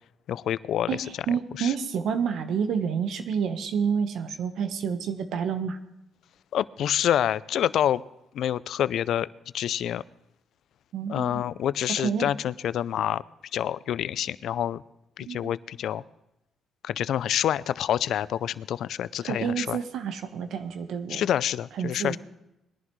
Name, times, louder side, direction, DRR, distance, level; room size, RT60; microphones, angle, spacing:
voice 1, 0.3-1.0 1.6-1.7 6.5-8.0 8.3-9.3 9.5-10.0 11.1-13.2 13.5-14.8 15.2-16.0 16.8-19.8 21.1-22.2, left 10 dB, 70° left, 18 dB, 0.4 m, -27 dB
voice 2, 0.9-5.8 10.9-11.4 12.0-12.3 15.3-15.5 19.3-21.3 21.8-22.2, right 7 dB, 75° right, 8 dB, 1.2 m, -29 dB
20.5 x 11.0 x 3.2 m, 0.89 s
cardioid pair, 90°, 0 cm